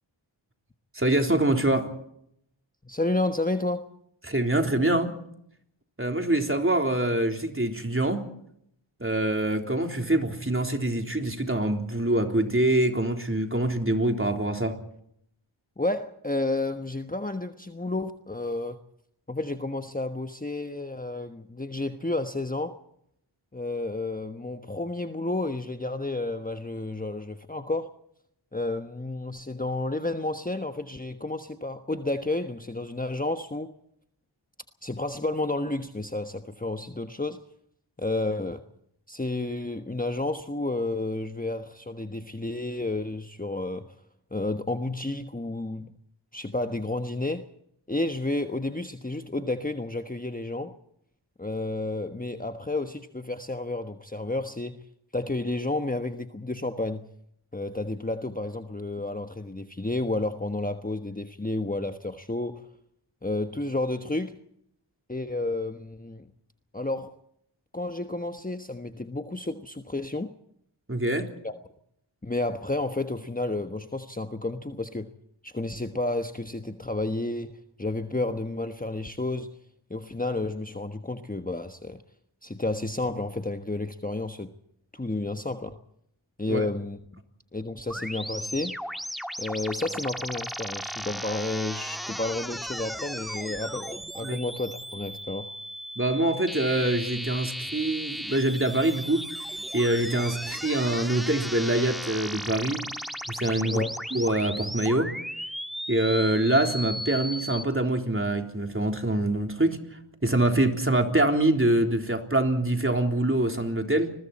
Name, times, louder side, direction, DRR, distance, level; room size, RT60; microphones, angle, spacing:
voice 1, 0.9-1.9 4.2-5.1 6.0-8.3 9.0-14.8 70.9-71.3 86.5-86.6 94.2-94.4 96.0-99.3 99.7-102.8 103.3-103.8 104.1-105.1 105.9-114.1, right 1 dB, 25° right, 3.7 m, -25 dB
voice 2, 2.8-3.9 15.8-18.8 19.3-22.8 23.5-27.9 28.5-33.7 34.8-37.4 38.0-38.6 39.1-43.9 44.3-45.9 46.3-47.5 47.9-50.7 51.4-54.8 55.1-57.0 57.5-62.7 63.2-64.4 65.1-66.3 66.7-67.2 67.7-70.3 71.4-71.6 72.2-75.1 75.4-79.6 79.9-82.0 82.4-84.5 84.9-85.8 86.4-87.0 87.5-88.8 89.4-95.5 103.7-103.9, left 2 dB, 15° left, 1.3 m, -31 dB
sound 1, 87.9-107.6, equal, ahead, 1.7 m, -36 dB
30.0 x 21.5 x 4.3 m
cardioid pair, 40°, 49 cm